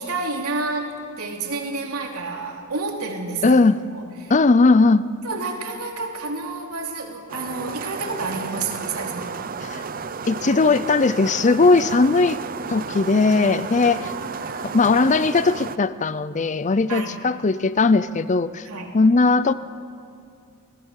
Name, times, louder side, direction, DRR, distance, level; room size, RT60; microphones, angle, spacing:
voice 1, 0.0-3.6 3.9-4.3 5.2-9.3 13.5-14.8 16.9-17.2 18.6-18.9, right 3 dB, 80° right, 1 dB, 3.2 m, -30 dB
voice 2, 3.4-3.8 4.3-5.1 9.7-9.8 10.3-12.4 12.7-14.1 14.7-18.7 18.9-19.5, left 3 dB, 35° left, 15 dB, 0.5 m, -18 dB
sound 1, 7.3-15.8, right 5 dB, 40° right, 0.7 m, -32 dB
28.5 x 19.0 x 6.5 m, 2.4 s
head